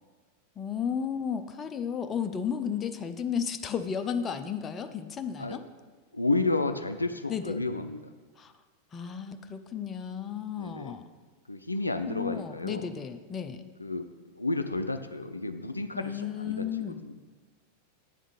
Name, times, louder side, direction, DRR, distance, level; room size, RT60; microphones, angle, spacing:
voice 1, 0.6-5.6 7.3-7.6 8.4-8.5 8.9-11.1 12.1-13.7 15.9-17.0, left 7 dB, 25° left, 8 dB, 0.5 m, -33 dB
voice 2, 6.1-8.1 10.6-11.0 11.5-12.9 13.8-17.1, left 2 dB, 85° left, 9 dB, 0.4 m, -31 dB
8.9 x 3.6 x 6.8 m, 1.4 s
figure-of-eight pair, 90°, 0 cm